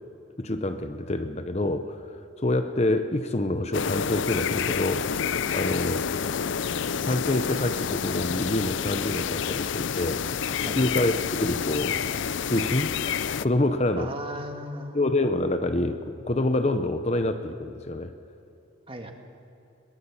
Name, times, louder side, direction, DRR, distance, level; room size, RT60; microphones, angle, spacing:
voice 1, 0.4-2.0 2.4-5.0 5.5-6.0 7.0-10.2 10.6-11.1 11.4-12.0 12.4-14.1 14.9-18.1, left 1 dB, 35° left, 8 dB, 0.8 m, -27 dB
sound 1, 3.7-13.5, left 7 dB, 70° left, 0.5 m, -28 dB
voice 2, 14.0-15.1 18.9-19.1, equal, 25° right, 5 dB, 1.7 m, -36 dB
22.0 x 18.5 x 7.3 m, 2.8 s
head